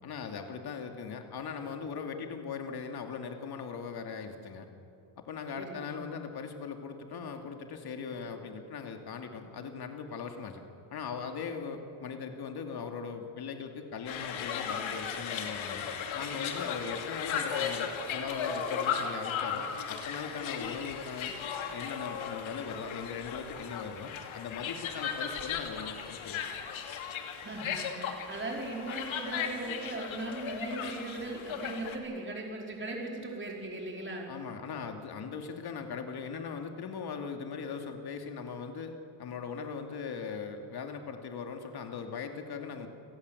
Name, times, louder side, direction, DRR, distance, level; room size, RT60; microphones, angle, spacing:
voice 1, 0.0-4.7 5.2-10.6 10.9-15.9 16.1-21.3 21.6-26.4 34.3-42.9, left 6 dB, 50° left, 5 dB, 2.5 m, -39 dB
voice 2, 5.6-6.0 27.4-34.3, right 2 dB, 25° right, 0 dB, 4.7 m, -38 dB
sound 1, 14.1-32.0, left 7 dB, 75° left, 2.8 m, -36 dB
29.5 x 18.0 x 8.0 m, 2.6 s
cardioid pair, 160°, 48 cm